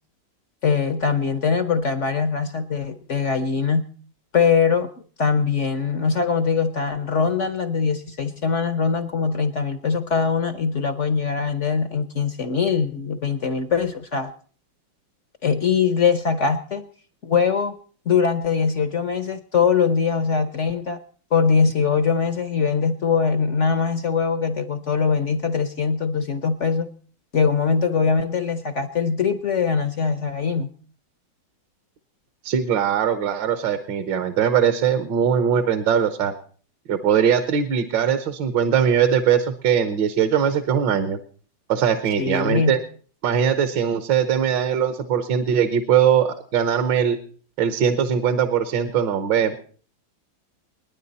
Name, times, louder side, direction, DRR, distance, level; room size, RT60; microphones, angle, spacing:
voice 1, 0.6-3.8 4.3-4.9 5.2-14.3 15.4-16.8 17.2-17.7 18.1-21.0 21.3-26.9 27.3-30.7 42.2-42.8, left 5 dB, 55° left, 10 dB, 0.8 m, -22 dB
voice 2, 32.4-36.3 36.9-41.2 41.7-42.8 43.2-47.2 47.6-49.6, right 8 dB, 65° right, 10 dB, 1.6 m, -21 dB
29.0 x 9.9 x 4.1 m, 0.43 s
omnidirectional pair, 2.2 m